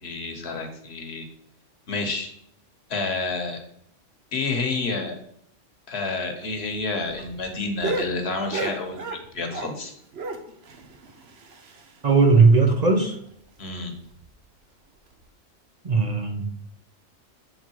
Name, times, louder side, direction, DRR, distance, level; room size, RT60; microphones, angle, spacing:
voice 1, 0.0-1.2 1.9-2.3 2.9-3.6 4.3-5.1 5.9-9.9 13.6-13.9, left 3 dB, 60° left, 4 dB, 1.3 m, -29 dB
sound 1, 6.4-9.8 10.1-12.1 12.4-12.5 12.8-12.9 13.3-13.4 14.0-14.3 15.1-15.2, right 3 dB, 60° right, 1.0 m, -34 dB
voice 2, 12.0-13.2 15.8-16.5, right 4 dB, 40° right, 3 dB, 0.7 m, -18 dB
7.8 x 3.6 x 4.6 m, 0.71 s
omnidirectional pair, 1.2 m